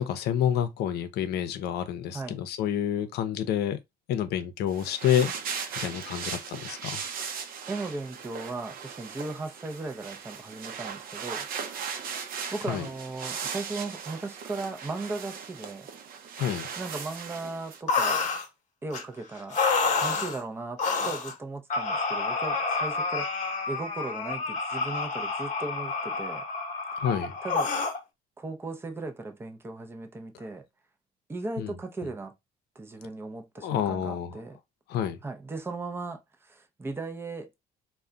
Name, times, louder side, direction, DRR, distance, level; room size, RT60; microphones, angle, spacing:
voice 1, 0.0-3.8 4.1-5.3 5.8-7.0 12.7-12.9 16.4-16.7 27.0-27.3 31.6-31.7 33.6-34.4 34.9-35.2, left 9 dB, 75° left, 0.6 m, -28 dB
sound 1, 4.7-17.8, right 6 dB, 60° right, 0.6 m, -38 dB
voice 2, 7.7-11.5 12.5-15.9 16.8-18.2 18.8-19.6 19.9-26.5 27.4-27.7 28.4-30.7 31.3-32.3 32.8-34.6 35.2-37.5, right 3 dB, 15° right, 0.5 m, -37 dB
sound 2, 17.9-18.5 18.9-19.0 19.5-20.4 20.8-21.3 21.7-28.0, left 4 dB, 45° left, 0.9 m, -29 dB
2.3 x 2.2 x 3.8 m
cardioid pair, 110°, 17 cm